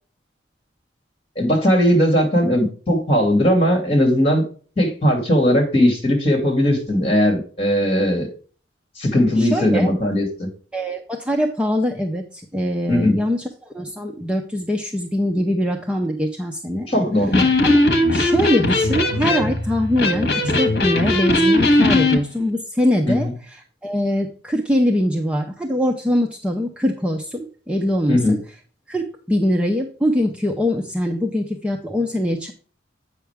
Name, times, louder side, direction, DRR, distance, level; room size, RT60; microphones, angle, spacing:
voice 1, 1.4-4.4 4.8-8.3 9.0-10.5 12.9-13.2 16.9-17.5 23.1-23.3 28.1-28.4, equal, 30° left, 1 dB, 2.8 m, -18 dB
voice 2, 9.4-9.9 10.7-13.4 13.7-16.9 17.7-17.8 18.1-23.3 23.8-28.4 28.9-32.5, equal, 5° right, 2 dB, 0.6 m, -22 dB
Electric guitar, 17.2-22.2, left 2 dB, 55° left, 1.4 m, -18 dB
8.2 x 5.8 x 3.5 m, 0.40 s
head